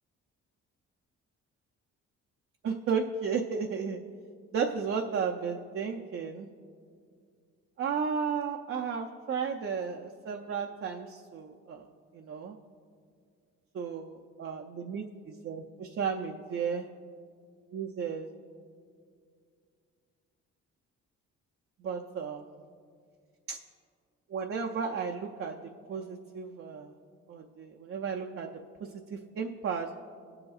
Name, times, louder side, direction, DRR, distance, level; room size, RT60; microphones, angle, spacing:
voice 1, 2.6-4.0 4.5-6.5 7.8-11.9 12.1-12.6 13.7-16.9 17.7-18.4 21.8-22.6 23.5-23.6 24.3-26.9 27.3-30.0, right 6 dB, 45° right, 2 dB, 0.6 m, -34 dB
19.0 x 7.8 x 2.4 m, 2.3 s
cardioid pair, 90°, 30 cm